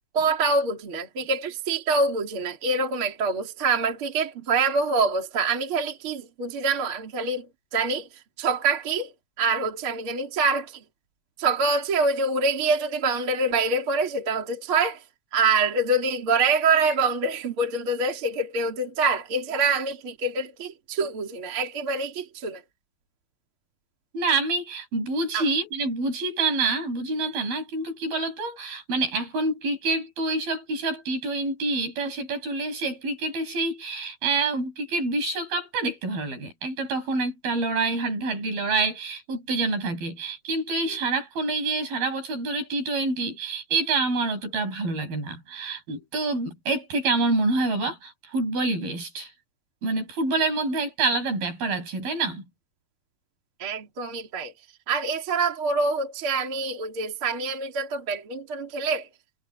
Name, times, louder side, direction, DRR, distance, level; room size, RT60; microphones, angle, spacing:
voice 1, 0.1-7.4 7.7-8.1 8.4-9.1 9.4-10.8 11.4-15.0 15.3-22.6 25.3-25.4 53.6-54.5 54.9-59.1, right 3 dB, 35° right, 3.4 m, -25 dB
voice 2, 24.1-49.3 49.8-52.4, right 3 dB, 60° right, 9.1 m, -27 dB
omnidirectional pair, 4.7 m